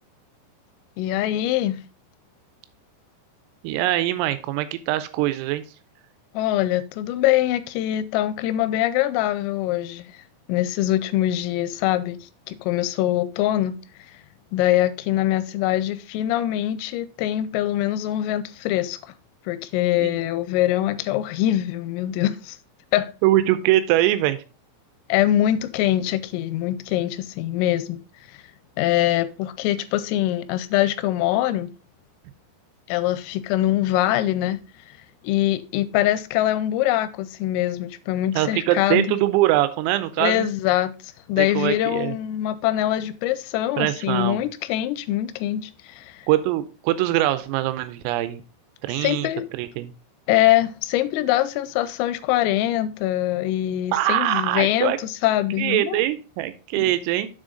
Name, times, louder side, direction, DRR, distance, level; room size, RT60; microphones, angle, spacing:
voice 1, 1.0-1.8 6.3-10.1 10.5-12.2 12.5-13.8 14.5-19.0 19.5-22.6 22.9-23.1 25.1-28.0 28.8-31.7 32.9-34.6 35.2-39.2 40.2-40.9 41.3-46.2 49.0-49.5 50.3-56.0 56.8-56.9, left 14 dB, 90° left, 3.2 m, -23 dB
voice 2, 3.6-5.6 20.0-20.2 23.2-24.4 38.4-40.5 41.4-42.2 43.8-44.4 46.3-48.4 48.8-49.3 49.5-49.9 53.9-55.0 55.6-57.3, right 14 dB, 85° right, 3.3 m, -22 dB
7.2 x 6.3 x 3.8 m
omnidirectional pair, 5.9 m